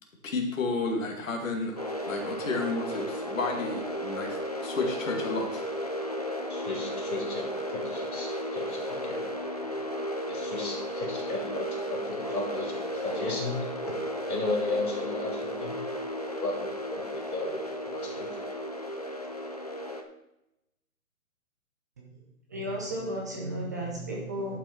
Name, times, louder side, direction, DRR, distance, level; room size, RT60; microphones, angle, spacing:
voice 1, 0.2-5.6, left 3 dB, 65° left, 2 dB, 2.3 m, -32 dB
sound 1, 1.8-20.0, equal, 30° left, 0.4 m, -34 dB
voice 2, 6.5-9.2 10.3-13.5 14.3-15.7 16.4-17.6 17.9-18.3, left 2 dB, 90° left, -1 dB, 3.7 m, -35 dB
voice 3, 22.5-24.6, right 1 dB, 15° right, -2 dB, 0.6 m, -34 dB
11.0 x 6.0 x 4.4 m, 0.90 s
hypercardioid pair, 160°, 43 cm